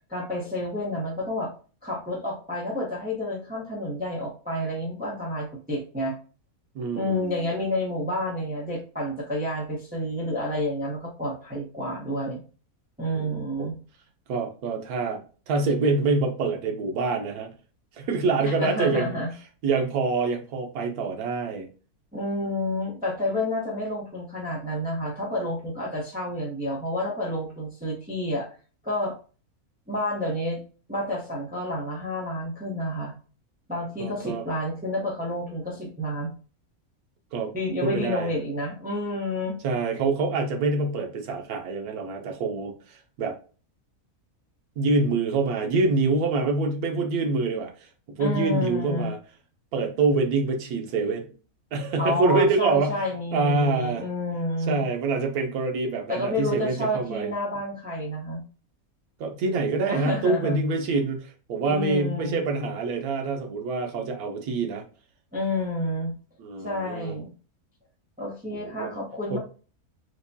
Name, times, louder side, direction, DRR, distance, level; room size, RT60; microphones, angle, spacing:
voice 1, 0.1-1.5 1.8-6.2 6.9-12.4 13.0-13.8 18.4-19.3 22.1-28.5 28.8-29.1 29.9-30.6 30.9-33.1 33.7-36.3 37.5-39.6 48.2-49.1 52.0-54.8 56.1-58.4 59.9-60.6 61.7-62.4 65.3-66.1 66.6-67.3 68.2-69.4, left 1 dB, 10° right, -3 dB, 0.6 m, -29 dB
voice 2, 6.7-7.4 13.1-13.7 14.3-15.2 15.5-17.5 18.0-19.2 19.6-21.7 34.0-34.4 37.3-37.5 37.8-38.3 39.6-43.4 44.8-49.2 49.7-51.2 51.7-52.9 53.3-54.0 54.6-57.3 59.2-64.8 66.4-67.2 68.5-68.9 69.3-69.4, right 3 dB, 85° right, 4 dB, 1.2 m, -26 dB
4.7 x 2.2 x 2.6 m, 0.37 s
omnidirectional pair, 1.6 m